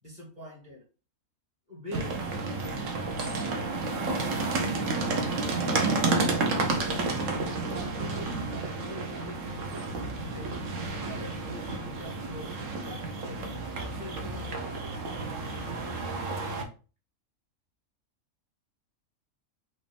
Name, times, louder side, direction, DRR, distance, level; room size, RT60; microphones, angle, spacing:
voice 1, 0.0-0.8 1.7-2.2 3.2-6.5 6.8-9.6 10.0-10.6 11.0-16.0, left 1 dB, 35° right, -4 dB, 1.8 m, -45 dB
sound 1, 1.9-16.6, right 3 dB, 70° right, 1.2 m, -31 dB
4.7 x 2.7 x 3.4 m, 0.35 s
omnidirectional pair, 1.4 m